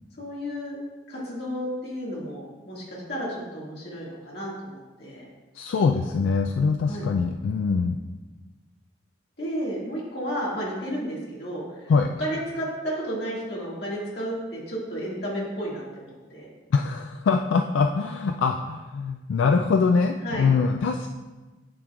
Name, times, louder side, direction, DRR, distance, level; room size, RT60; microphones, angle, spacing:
voice 1, 0.2-0.8 1.1-5.3 6.8-7.1 9.4-11.9 12.2-16.5 20.2-20.5, equal, 55° left, -5 dB, 2.0 m, -32 dB
voice 2, 5.5-8.0 11.9-12.1 16.7-21.1, left 5 dB, 85° left, 4 dB, 0.3 m, -23 dB
10.0 x 5.1 x 2.4 m, 1.2 s
head